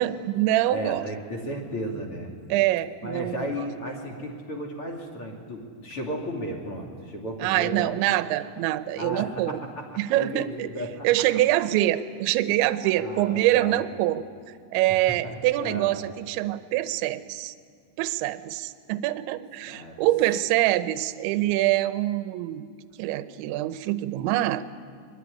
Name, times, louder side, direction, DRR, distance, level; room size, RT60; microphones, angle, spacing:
voice 1, 0.0-1.0 2.5-3.5 7.4-9.6 10.0-10.7 11.0-14.2 14.7-17.5 18.0-22.6 23.0-24.6, right 15 dB, 80° right, 12 dB, 2.8 m, -25 dB
voice 2, 0.7-2.3 3.0-7.9 8.9-11.1 12.9-13.8 14.9-15.9 19.7-20.0, equal, 35° left, 2 dB, 2.5 m, -34 dB
24.0 x 22.5 x 9.9 m, 2.1 s
omnidirectional pair, 5.9 m